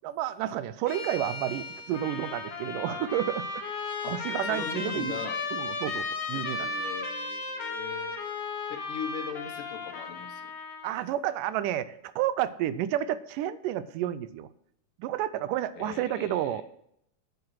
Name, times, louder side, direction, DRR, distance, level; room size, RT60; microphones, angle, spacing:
voice 1, 0.0-3.6 4.1-5.2 5.5-6.7 10.8-14.5 15.0-16.6, right 12 dB, 85° right, 15 dB, 2.2 m, -31 dB
sound 1, 0.9-5.0, left 3 dB, 35° left, 2.8 m, -44 dB
Trumpet, 1.9-11.1, left 3 dB, 55° left, 2.3 m, -35 dB
voice 2, 4.4-5.4 6.6-8.2 8.7-10.5 15.7-16.6, left 8 dB, 75° left, 7 dB, 2.6 m, -39 dB
9.7 x 8.1 x 6.2 m, 0.74 s
omnidirectional pair, 3.8 m